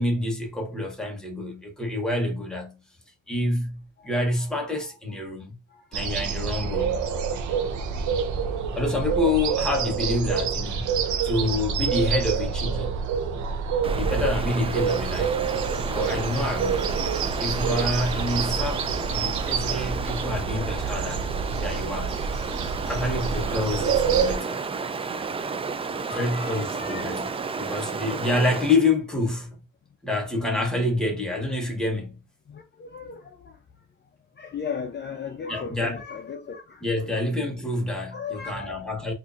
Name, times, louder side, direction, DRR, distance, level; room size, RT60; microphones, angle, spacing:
voice 1, 0.0-2.8 3.3-5.5 5.9-7.1 8.7-10.9 11.2-12.9 13.9-15.6 15.9-16.9 17.4-21.2 21.6-22.3 22.8-24.6 26.1-27.3 27.6-29.6 30.0-32.2 35.5-36.0 36.8-39.1, left 2 dB, ahead, 1.1 m, -27 dB
voice 2, 4.0-5.2 5.7-6.1 24.7-24.8 26.0-27.2 27.9-28.0 31.1-31.2 32.5-33.9 34.4-37.2 38.1-39.1, left 6 dB, 35° left, 0.5 m, -38 dB
sound 1, 5.9-24.4, right 6 dB, 70° right, 0.7 m, -27 dB
Stream, 13.8-28.9, right 5 dB, 20° right, 0.3 m, -32 dB
4.3 x 2.6 x 2.5 m
cardioid pair, 90°, 30 cm